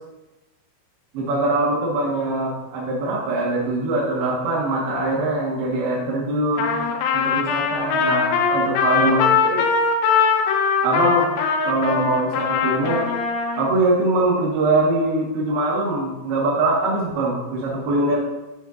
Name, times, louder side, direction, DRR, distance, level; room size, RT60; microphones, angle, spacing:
voice 1, 1.1-6.8 7.1-9.7 10.8-11.3 11.6-13.1 13.6-18.2, right 2 dB, 65° right, -6 dB, 2.9 m, -22 dB
Trumpet, 6.6-13.7, left 6 dB, 85° left, 3.3 m, -21 dB
11.5 x 7.4 x 2.5 m, 1.0 s
omnidirectional pair, 5.8 m